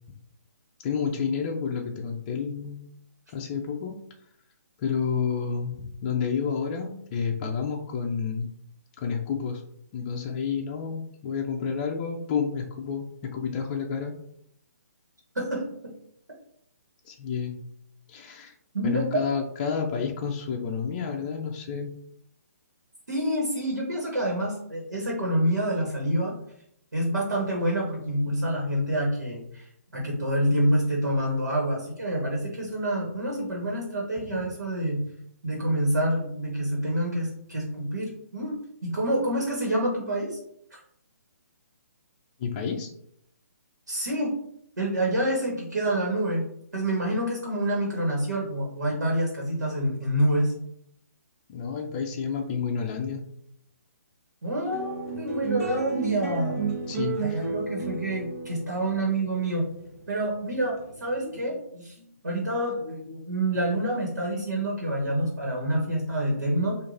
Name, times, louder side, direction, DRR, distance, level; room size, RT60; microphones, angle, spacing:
voice 1, 0.8-2.8 3.3-4.0 4.8-8.5 9.0-9.6 9.9-14.1 17.0-17.6 18.1-18.5 18.8-21.9 42.4-42.9 51.5-53.2 56.9-57.5 62.0-62.1, left 6 dB, 30° left, 1 dB, 0.5 m, -30 dB
voice 2, 23.1-26.4 26.9-29.7 29.9-35.0 35.4-40.4 40.7-40.8 43.9-44.3 44.8-46.4 46.7-50.5 54.4-56.8 57.2-59.7 60.1-62.0 62.2-66.8, right 1 dB, 90° right, -2 dB, 1.3 m, -27 dB
sound 1, 54.7-61.4, right 4 dB, 60° right, 1.2 m, -33 dB
4.6 x 2.5 x 2.6 m, 0.71 s
hypercardioid pair, 145°, 9 cm